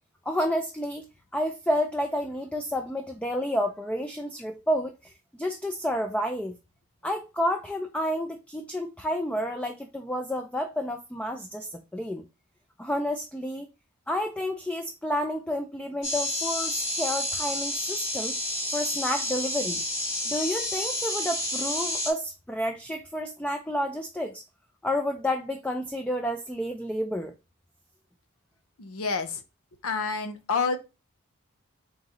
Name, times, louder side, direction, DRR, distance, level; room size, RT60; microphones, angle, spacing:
voice 1, 0.3-1.1 1.3-5.1 5.4-6.5 7.0-12.3 12.8-13.7 14.1-18.3 18.7-19.8 20.3-24.4 24.8-27.3, equal, 5° left, 0.3 m, -30 dB
sound 1, 16.0-22.1, left 1 dB, 60° left, 2.3 m, -30 dB
voice 2, 28.8-29.4 29.8-30.8, left 4 dB, 80° left, 0.7 m, -28 dB
4.0 x 3.8 x 2.9 m
head